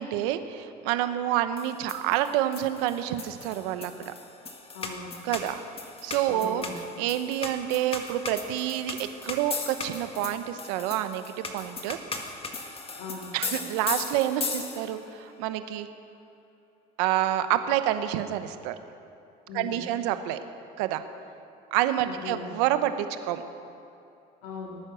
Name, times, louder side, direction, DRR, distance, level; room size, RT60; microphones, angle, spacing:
voice 1, 0.0-4.1 5.2-5.6 6.0-6.6 7.0-12.0 13.3-15.9 17.0-18.7 19.5-20.4 20.8-21.0 21.7-23.4, right 12 dB, 85° right, 10 dB, 0.9 m, -28 dB
sound 1, 1.6-15.1, left 4 dB, 30° left, 1.7 m, -37 dB
voice 2, 4.7-5.1 6.3-6.8 13.0-13.3 19.5-19.8 22.0-22.5 24.4-24.8, left 4 dB, 80° left, -3 dB, 2.3 m, -39 dB
19.0 x 9.0 x 6.3 m, 2.7 s
supercardioid pair, 100°, 20 cm